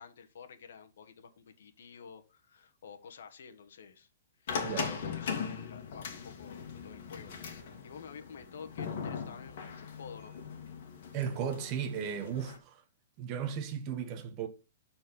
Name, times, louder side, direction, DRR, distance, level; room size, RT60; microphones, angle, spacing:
voice 1, 0.0-4.1 4.4-10.3, left 6 dB, 65° left, 1.3 m, -51 dB
sound 1, 4.5-12.6, left 6 dB, 45° left, 2.0 m, -40 dB
voice 2, 4.6-4.9 11.1-12.8 13.2-14.5, right 8 dB, 25° right, 0.9 m, -35 dB
12.5 x 4.4 x 3.8 m
hypercardioid pair, 175°, 0 cm